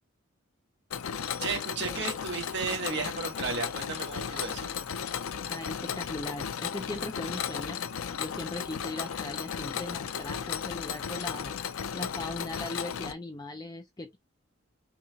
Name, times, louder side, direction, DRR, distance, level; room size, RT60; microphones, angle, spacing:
Mechanisms, 0.9-13.1, left 7 dB, 80° left, 0.5 m, -35 dB
voice 1, 1.4-4.7, right 4 dB, 55° right, 1.5 m, -34 dB
voice 2, 5.5-7.8 8.2-14.2, left 2 dB, 20° left, 0.4 m, -39 dB
5.7 x 2.5 x 2.8 m
head